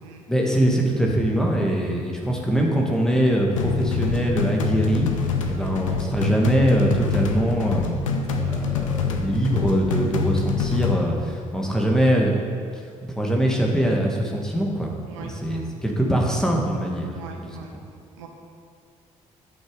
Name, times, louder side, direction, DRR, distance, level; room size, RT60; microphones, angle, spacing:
voice 1, 0.3-5.1 5.5-8.0 8.4-12.4 13.0-14.9 15.2-17.1 17.4-17.5, right 1 dB, 5° left, -1 dB, 2.0 m, -22 dB
sound 1, 3.6-11.0, left 5 dB, 75° left, 0.7 m, -25 dB
voice 2, 15.1-15.6 17.1-17.8 18.2-18.3, right 5 dB, 75° right, 2 dB, 1.0 m, -41 dB
10.5 x 6.5 x 5.0 m, 2.2 s
figure-of-eight pair, 45°, 17 cm